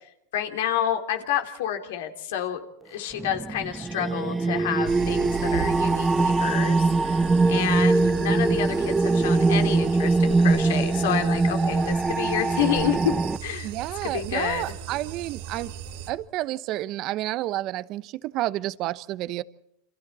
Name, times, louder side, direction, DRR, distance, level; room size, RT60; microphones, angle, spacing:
voice 1, 0.3-2.6 2.8-13.7 14.1-14.6, left 10 dB, 75° left, 3.1 m, -29 dB
sound 1, 3.2-13.4, right 3 dB, 15° right, 0.8 m, -22 dB
sound 2, 4.9-16.1, right 8 dB, 75° right, 3.8 m, -37 dB
voice 2, 13.6-15.7 16.1-19.4, right 15 dB, 50° right, 1.0 m, -30 dB
28.5 x 27.0 x 4.3 m
hypercardioid pair, 110°, 0 cm